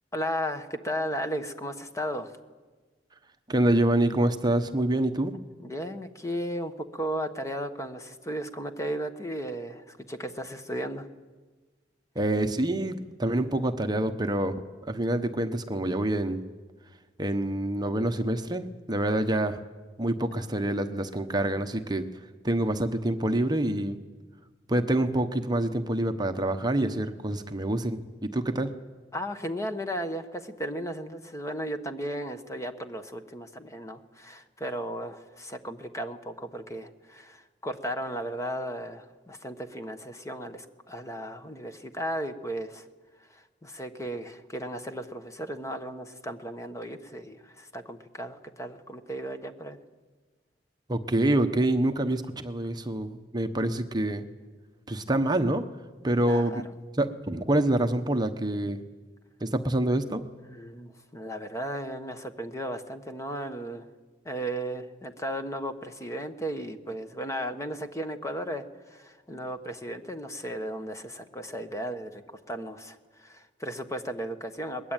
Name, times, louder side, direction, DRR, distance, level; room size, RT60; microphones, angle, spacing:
voice 1, 0.1-2.4 5.6-11.1 29.1-42.9 43.3-49.8 56.2-56.6 60.4-63.9 64.2-74.9, equal, 15° left, 7 dB, 1.3 m, -35 dB
voice 2, 3.5-5.4 12.1-14.6 14.9-16.4 17.2-19.6 20.0-22.1 22.4-24.0 24.7-28.7 50.9-54.3 54.9-55.7 56.0-56.6 57.0-58.8 59.4-60.2 69.3-69.4, right 1 dB, 25° right, 7 dB, 1.0 m, -26 dB
22.0 x 21.0 x 9.1 m, 1.4 s
head